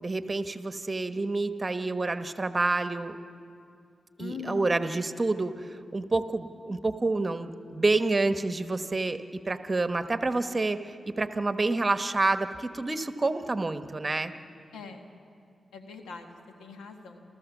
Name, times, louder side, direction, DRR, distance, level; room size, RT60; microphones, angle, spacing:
voice 1, 0.0-3.2 4.2-14.3, right 3 dB, 35° right, 9 dB, 1.1 m, -28 dB
voice 2, 4.2-4.7 14.7-15.1 15.7-16.3 16.6-17.2, left 5 dB, 90° left, 5 dB, 1.6 m, -41 dB
28.5 x 14.5 x 7.2 m, 2.5 s
supercardioid pair, 45°, 0 cm